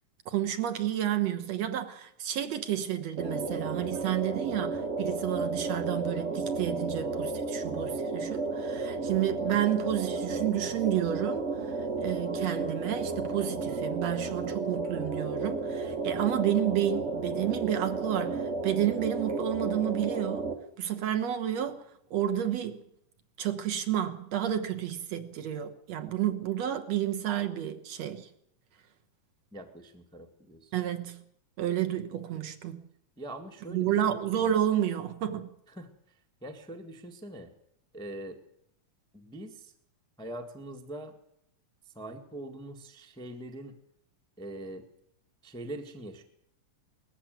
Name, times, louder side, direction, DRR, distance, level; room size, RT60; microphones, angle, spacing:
voice 1, 0.3-11.7 12.0-21.8 22.1-22.8 23.4-28.3 30.7-31.2 31.6-32.8 33.7-35.5, right 11 dB, 65° right, 2.2 m, -30 dB
sound 1, 3.2-20.5, right 3 dB, 35° right, 1.2 m, -33 dB
voice 2, 29.5-30.7 33.2-33.9 35.7-35.9 36.4-37.5 37.9-38.4 39.1-39.7 40.2-41.1 41.9-43.7 44.4-44.9 45.4-46.2, right 1 dB, 5° left, 0.9 m, -42 dB
19.5 x 14.5 x 9.3 m
omnidirectional pair, 3.5 m